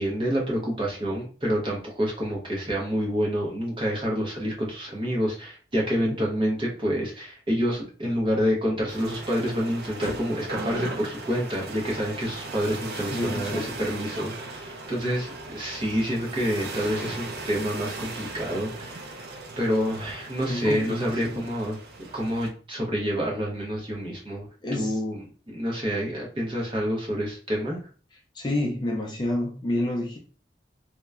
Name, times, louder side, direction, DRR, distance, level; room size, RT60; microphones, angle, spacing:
voice 1, 0.0-21.8 22.1-24.5 24.7-27.8, equal, 30° right, -2 dB, 0.8 m, -28 dB
sound 1, 8.9-22.5, right 2 dB, 60° right, 0.4 m, -38 dB
voice 2, 13.1-13.7 20.5-21.5 24.6-25.0 28.3-30.2, left 1 dB, 25° left, 0 dB, 0.4 m, -29 dB
2.9 x 2.1 x 2.3 m, 0.40 s
head